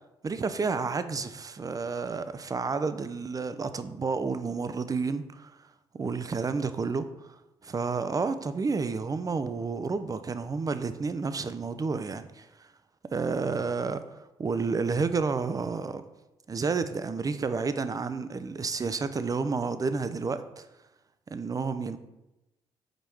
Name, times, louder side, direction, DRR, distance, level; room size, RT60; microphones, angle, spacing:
voice 1, 0.2-5.5 5.9-7.4 7.6-12.7 13.1-16.0 16.5-20.7 21.3-22.0, right 4 dB, 30° right, 11 dB, 0.5 m, -30 dB
5.2 x 4.5 x 4.4 m, 0.97 s
hypercardioid pair, 45°, 12 cm